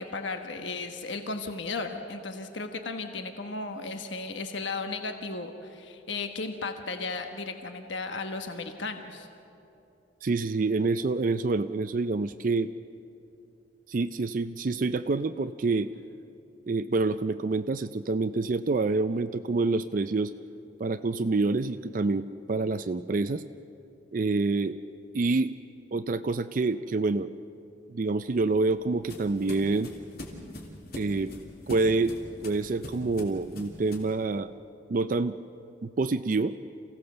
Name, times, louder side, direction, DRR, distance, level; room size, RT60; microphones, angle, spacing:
voice 1, 0.0-9.3, left 3 dB, 70° left, 6 dB, 1.2 m, -35 dB
voice 2, 10.2-12.7 13.9-15.9 16.7-20.3 20.8-23.4 24.1-24.8 25.1-25.5 25.9-27.3 27.9-29.9 31.0-31.3 31.7-34.5 34.9-35.4 35.8-36.5, right 3 dB, 45° right, 11 dB, 0.4 m, -27 dB
sound 1, 28.1-34.2, left 1 dB, 50° left, 3.1 m, -43 dB
28.0 x 16.5 x 6.8 m, 2.7 s
head